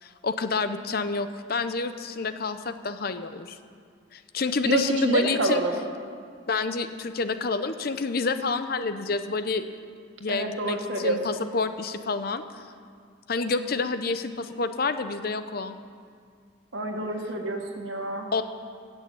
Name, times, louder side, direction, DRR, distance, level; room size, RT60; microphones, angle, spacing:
voice 1, 0.0-3.6 4.1-5.6 6.5-9.8 10.2-12.4 13.3-15.8 18.3-18.4, left 4 dB, 50° left, 10 dB, 0.6 m, -28 dB
voice 2, 4.6-5.7 10.3-11.4 16.7-18.3, right 2 dB, 75° right, 2 dB, 1.7 m, -27 dB
17.0 x 6.3 x 8.5 m, 2.1 s
head